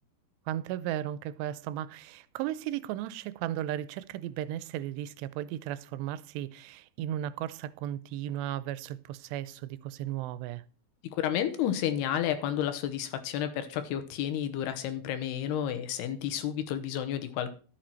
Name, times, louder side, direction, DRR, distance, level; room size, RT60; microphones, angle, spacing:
voice 1, 0.5-10.6, right 12 dB, 90° right, 2.8 m, -35 dB
voice 2, 11.0-17.5, left 10 dB, 80° left, 2.9 m, -31 dB
12.0 x 7.7 x 4.4 m
omnidirectional pair, 4.8 m